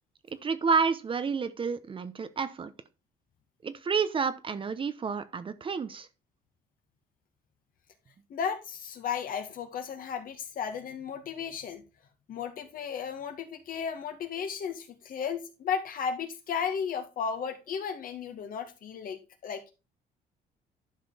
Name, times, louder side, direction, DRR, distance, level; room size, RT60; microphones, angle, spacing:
voice 1, 0.3-2.7 3.6-6.1, right 5 dB, 30° right, 0.9 m, -30 dB
voice 2, 8.3-11.8 12.3-19.7, left 7 dB, 55° left, 2.1 m, -34 dB
11.5 x 5.1 x 4.1 m
cardioid pair, 110°, 17 cm